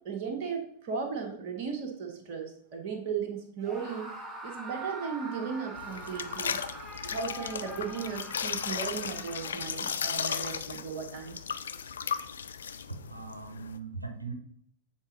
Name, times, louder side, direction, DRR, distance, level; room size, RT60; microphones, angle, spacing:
voice 1, 0.0-4.1 4.4-6.6 7.0-11.4, right 6 dB, 45° right, 2 dB, 1.3 m, -36 dB
Screaming, 3.6-9.9, right 2 dB, 10° right, 1.2 m, -44 dB
sound 1, 5.7-13.8, left 7 dB, 70° left, 0.3 m, -36 dB
voice 2, 12.9-14.3, right 4 dB, 85° right, 6 dB, 0.8 m, -40 dB
7.1 x 3.9 x 3.9 m, 0.67 s
figure-of-eight pair, 90°, 0 cm